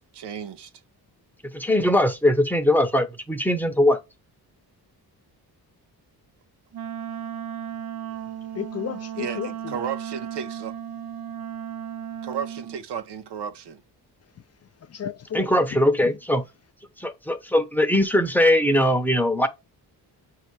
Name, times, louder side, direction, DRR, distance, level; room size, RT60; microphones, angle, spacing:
voice 1, 0.1-0.7 9.2-9.4 9.7-10.8 12.2-13.8, right 7 dB, 85° right, 0.9 m, -33 dB
voice 2, 1.5-4.0 15.3-16.4 17.0-19.5, left 1 dB, 5° left, 0.8 m, -21 dB
Wind instrument woodwind instrument, 6.7-12.8, right 9 dB, 65° right, 0.6 m, -35 dB
voice 3, 8.5-9.8 14.4-14.5 14.8-16.1, left 9 dB, 40° left, 0.4 m, -34 dB
7.4 x 2.9 x 4.6 m
wide cardioid pair, 125°, 40 cm